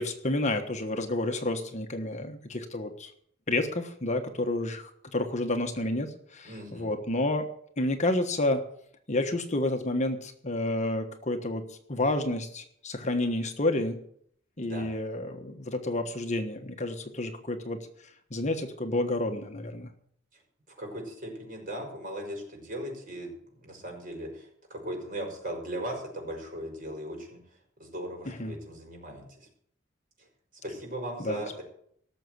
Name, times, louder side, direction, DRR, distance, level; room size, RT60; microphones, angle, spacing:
voice 1, 0.0-3.1 3.5-7.5 7.8-8.6 9.1-14.0 14.6-17.9 18.3-19.9 28.3-28.6 31.2-31.6, left 2 dB, 35° left, 6 dB, 1.3 m, -30 dB
voice 2, 6.4-6.9 14.6-14.9 20.8-23.3 23.6-27.4 27.8-29.5 30.2-30.3 30.6-31.6, right 1 dB, 45° right, 1 dB, 5.8 m, -38 dB
18.0 x 7.1 x 7.9 m, 0.66 s
head